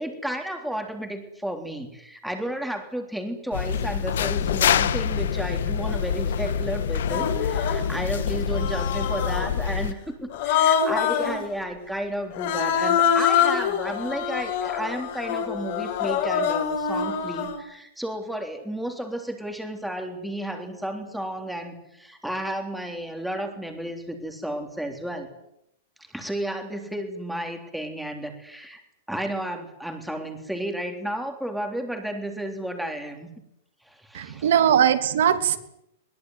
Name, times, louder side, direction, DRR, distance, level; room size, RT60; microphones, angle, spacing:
voice 1, 0.0-25.3 26.1-28.8 29.1-33.3 33.9-34.5, right 1 dB, ahead, 3 dB, 3.5 m, -32 dB
sound 1, 3.5-9.9, left 7 dB, 65° left, 1.6 m, -26 dB
Human voice, 5.9-6.0 7.0-7.9 8.5-9.6 10.3-11.4 12.3-17.6, left 8 dB, 40° left, 5.1 m, -25 dB
voice 2, 34.1-35.6, right 9 dB, 60° right, 9 dB, 2.9 m, -20 dB
22.5 x 22.0 x 9.5 m, 0.78 s
supercardioid pair, 180°, 0 cm